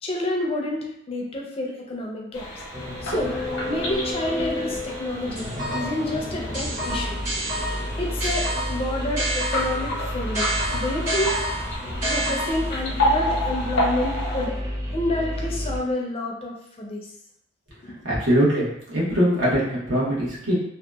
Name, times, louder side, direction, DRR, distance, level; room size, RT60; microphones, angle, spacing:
voice 1, 0.0-2.5 3.0-7.2 7.9-11.5 12.1-14.6 14.9-17.1 17.8-18.0, left 1 dB, 30° left, -1 dB, 0.4 m, -29 dB
sound 1, 2.3-14.5, equal, 90° left, 0.7 m, -31 dB
sound 2, 2.7-15.8, left 1 dB, 15° right, 0.6 m, -31 dB
sound 3, 5.4-6.1 6.5-9.9 10.3-12.8, right 1 dB, 40° right, 1.5 m, -29 dB
voice 2, 18.0-20.5, equal, 75° right, -6 dB, 1.0 m, -22 dB
2.7 x 2.1 x 2.3 m, 0.76 s
head